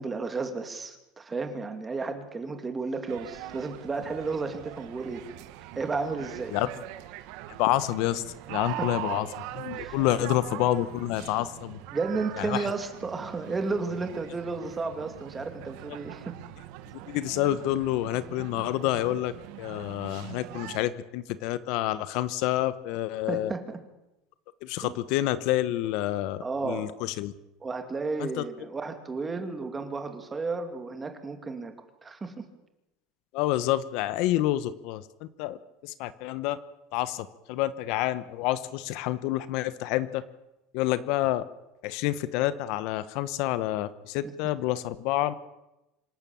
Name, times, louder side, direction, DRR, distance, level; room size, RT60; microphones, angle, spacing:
voice 1, 0.0-5.2 5.7-6.6 8.8-8.9 9.7-10.1 11.9-16.3 23.3-23.8 24.8-25.0 26.4-26.9 27.6-31.7 32.0-32.5 44.2-44.3, right 4 dB, 15° right, 7 dB, 2.6 m, -33 dB
sound 1, 3.1-20.8, right 14 dB, 65° right, 1.6 m, -42 dB
voice 2, 7.6-8.2 8.5-9.3 9.5-11.8 12.4-12.6 17.1-19.3 19.6-23.5 24.6-27.3 28.2-28.4 33.3-35.6 35.8-36.6 36.9-40.2 40.7-41.4 41.8-45.3, left 14 dB, 60° left, 15 dB, 1.1 m, -28 dB
26.0 x 12.0 x 8.7 m, 0.94 s
supercardioid pair, 140°, 0 cm